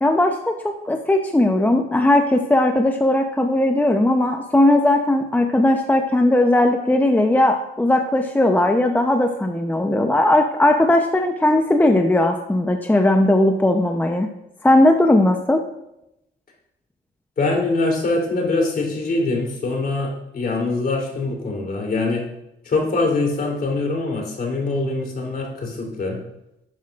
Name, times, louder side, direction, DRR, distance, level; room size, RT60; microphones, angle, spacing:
voice 1, 0.0-14.3 14.6-15.6, left 1 dB, 10° left, 4 dB, 0.7 m, -18 dB
voice 2, 17.4-22.2 22.6-26.2, left 3 dB, 50° left, -1 dB, 3.3 m, -23 dB
12.0 x 8.8 x 2.5 m, 0.85 s
cardioid pair, 90°, 20 cm